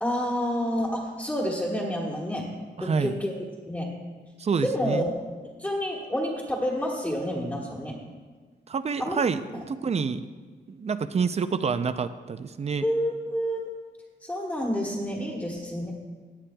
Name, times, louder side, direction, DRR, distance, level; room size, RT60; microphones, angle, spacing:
voice 1, 0.0-2.5 2.8-3.3 3.7-3.8 4.6-5.1 5.6-7.9 9.0-9.2 9.5-9.6 12.8-13.7 14.2-15.9, equal, 10° left, -5 dB, 1.3 m, -29 dB
voice 2, 2.8-3.2 4.4-5.0 8.7-10.3 10.7-12.9, right 5 dB, 35° right, 12 dB, 0.4 m, -28 dB
17.5 x 10.0 x 2.3 m, 1.5 s
wide cardioid pair, 175°, 19 cm